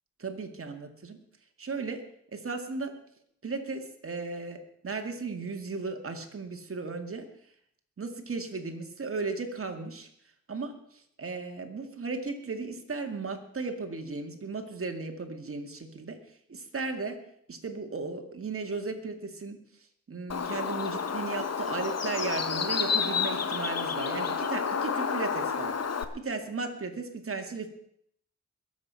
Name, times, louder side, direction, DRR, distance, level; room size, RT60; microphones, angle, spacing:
voice 1, 0.2-1.2 1.6-2.0 2.3-2.9 3.4-7.3 8.0-10.1 10.5-10.7 11.2-16.2 16.5-17.2 17.5-19.6 20.1-25.7 26.2-27.7, right 4 dB, 50° right, 5 dB, 2.2 m, -35 dB
Bird, 20.3-26.0, left 6 dB, 60° left, 1.2 m, -30 dB
21.5 x 7.9 x 5.7 m, 0.68 s
wide cardioid pair, 85°, 29 cm